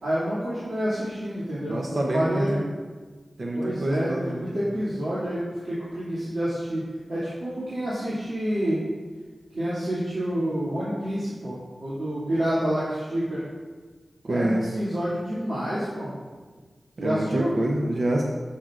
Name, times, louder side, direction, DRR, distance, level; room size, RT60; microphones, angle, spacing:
voice 1, 0.0-2.6 3.6-6.8 7.1-8.8 9.5-13.4 14.3-16.1 17.0-17.5, equal, 85° right, -11 dB, 2.4 m, -28 dB
voice 2, 1.7-2.7 3.4-4.4 14.2-14.7 17.0-18.2, right 1 dB, 65° right, -1 dB, 0.7 m, -26 dB
10.0 x 7.5 x 2.5 m, 1.4 s
wide cardioid pair, 90°, 0 cm